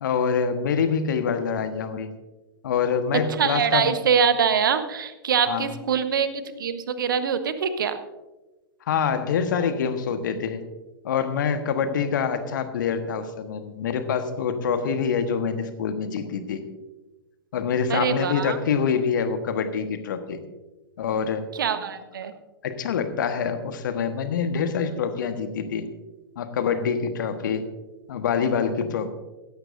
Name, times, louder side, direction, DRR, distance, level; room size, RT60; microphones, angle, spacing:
voice 1, 0.0-2.1 2.6-4.0 5.5-5.7 8.9-10.6 11.0-16.6 17.5-20.4 21.0-21.5 22.6-25.9 26.3-27.7 28.1-29.1, left 6 dB, 55° left, 9 dB, 1.4 m, -25 dB
voice 2, 3.1-8.0 17.9-18.6 21.5-22.3, right 7 dB, 60° right, 11 dB, 1.2 m, -24 dB
16.5 x 14.5 x 2.6 m, 1.1 s
figure-of-eight pair, 100°, 12 cm